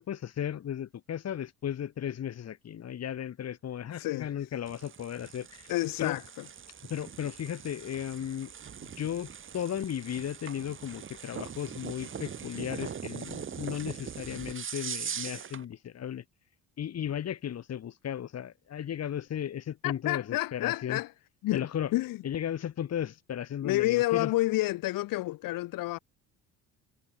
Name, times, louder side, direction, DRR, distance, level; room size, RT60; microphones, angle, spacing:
voice 1, 0.0-5.7 6.0-6.2 6.9-8.5 8.8-16.2 16.8-21.0 21.5-21.9 22.2-24.3, left 9 dB, 45° left, 3.6 m, -35 dB
voice 2, 4.0-4.3 5.7-6.5 19.8-21.1 21.4-21.7 21.9-22.2 23.6-26.0, left 17 dB, 75° left, 1.6 m, -29 dB
sound 1, 4.7-15.6, right 7 dB, 35° right, 3.0 m, -41 dB
cardioid pair, 115°, 34 cm